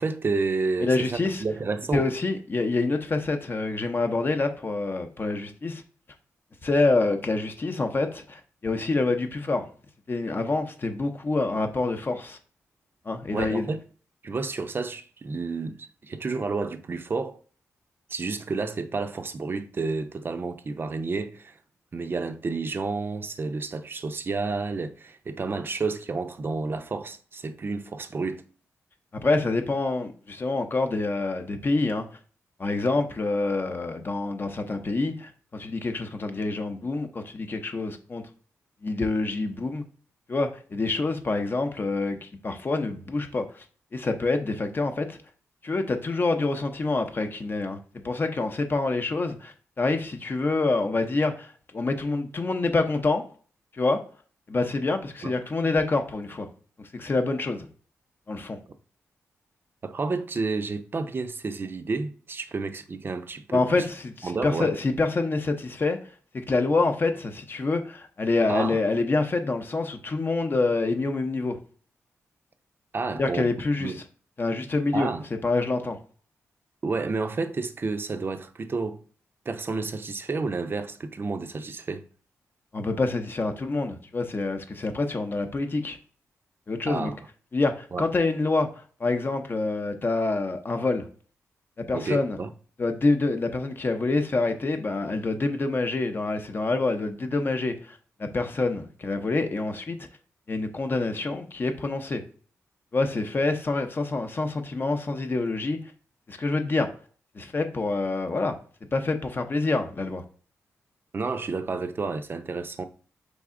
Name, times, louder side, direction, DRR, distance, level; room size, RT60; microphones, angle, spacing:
voice 1, 0.0-2.1 13.3-13.8 14.2-17.4 18.1-21.6 21.9-28.4 55.2-55.3 59.8-63.8 64.2-64.7 68.5-68.8 72.9-73.5 73.8-74.0 74.9-75.2 76.8-79.0 79.5-82.0 86.9-87.2 87.9-88.0 91.9-92.5 111.1-112.9, right 4 dB, 40° right, 0.5 m, -30 dB
voice 2, 0.8-1.4 1.9-5.8 6.6-9.6 10.1-12.4 13.1-13.7 29.1-32.1 32.6-38.2 38.8-39.8 40.3-43.6 43.9-45.2 45.6-47.8 48.0-53.2 53.7-54.0 54.5-56.5 56.8-57.7 58.3-58.6 63.5-66.0 66.3-71.6 73.2-73.9 74.4-75.1 75.4-76.0 82.7-86.0 86.7-87.1 87.5-91.0 91.8-92.4 92.8-100.1 100.5-102.2 102.9-105.8 106.3-106.9 107.3-108.5 108.9-110.2, left 3 dB, 40° left, 0.7 m, -26 dB
4.2 x 3.5 x 3.6 m
cardioid pair, 75°, 6 cm